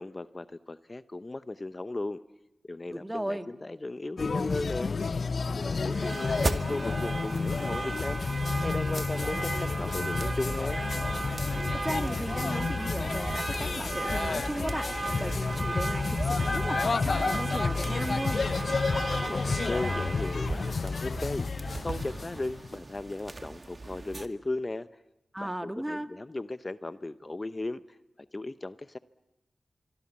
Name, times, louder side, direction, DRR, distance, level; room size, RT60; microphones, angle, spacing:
voice 1, 0.0-2.2 2.6-4.9 5.6-8.2 8.6-10.8 19.3-21.5 21.8-24.9 25.4-27.8 28.3-29.0, left 2 dB, 40° left, 13 dB, 0.8 m, -36 dB
voice 2, 2.9-3.5 11.8-14.9 15.2-18.4 25.3-26.1, right 1 dB, 15° right, 8 dB, 1.7 m, -36 dB
sound 1, 4.2-22.7, left 4 dB, 70° left, 0.8 m, -31 dB
sound 2, 5.9-24.3, right 2 dB, 45° right, 2.1 m, -35 dB
25.5 x 24.0 x 7.4 m, 0.99 s
cardioid pair, 40°, 0 cm